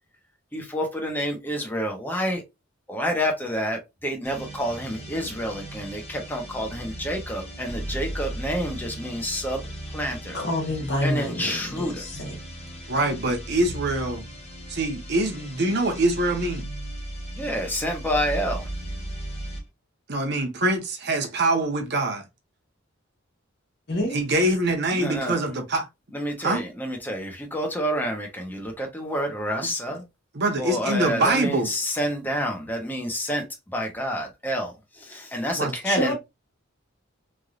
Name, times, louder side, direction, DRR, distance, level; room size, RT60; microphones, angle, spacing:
voice 1, 0.5-2.4 2.9-9.6 9.9-10.4 11.0-12.0 17.4-18.7 24.9-25.4 26.1-30.0 30.6-33.4 33.7-36.1, equal, 10° left, 0.8 m, -28 dB
sound 1, 4.2-19.7, right 1 dB, 30° left, 1.1 m, -37 dB
voice 2, 10.3-12.4 23.9-24.2 35.8-36.1, left 1 dB, 55° left, 1.3 m, -27 dB
voice 3, 12.9-14.2 14.7-16.7 20.1-22.2 24.1-25.9 26.4-26.6 30.3-31.7 35.6-35.7, right 2 dB, 55° right, 0.9 m, -24 dB
3.2 x 2.6 x 2.4 m
head